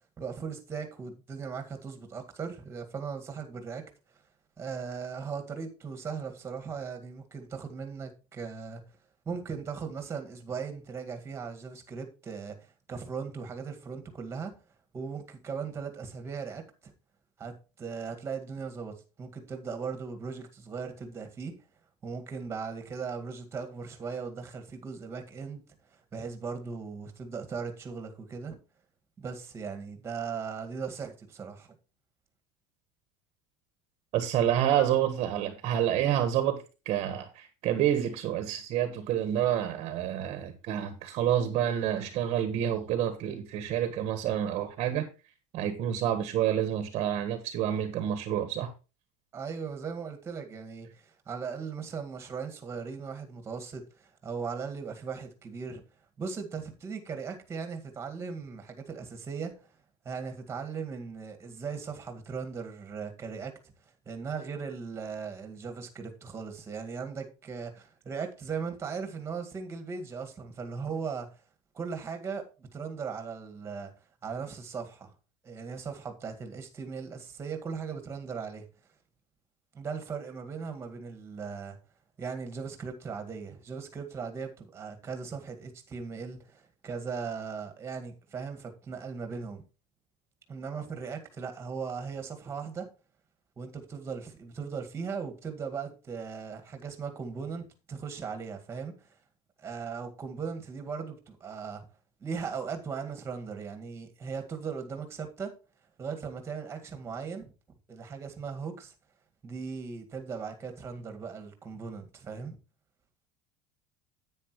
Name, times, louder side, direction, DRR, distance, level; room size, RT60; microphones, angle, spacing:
voice 1, 0.2-3.8 4.6-8.8 9.3-12.6 12.9-14.5 14.9-16.9 17.4-21.5 22.0-25.6 26.1-28.6 29.2-31.7 49.3-55.8 56.2-59.7 60.1-63.5 64.1-71.3 71.7-73.9 74.2-75.1 75.4-78.6 79.7-81.8 82.2-89.6 90.5-92.9 93.6-99.1 99.6-101.8 102.2-105.5 106.0-107.5 107.9-108.9 109.4-112.6, right 5 dB, 15° right, 1.9 m, -38 dB
voice 2, 34.1-45.1 45.5-48.7, right 10 dB, 40° right, 1.4 m, -28 dB
10.0 x 9.2 x 3.1 m
cardioid pair, 165°, 15 cm